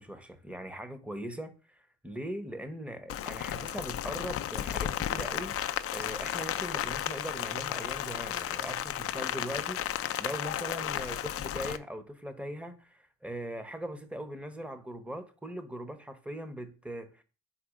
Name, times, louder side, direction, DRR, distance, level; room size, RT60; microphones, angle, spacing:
voice 1, 0.0-17.2, right 1 dB, 5° right, 1.0 m, -40 dB
Rain, 3.1-11.8, left 11 dB, 50° left, 0.4 m, -34 dB
4.8 x 4.4 x 5.0 m
cardioid pair, 90°, 30 cm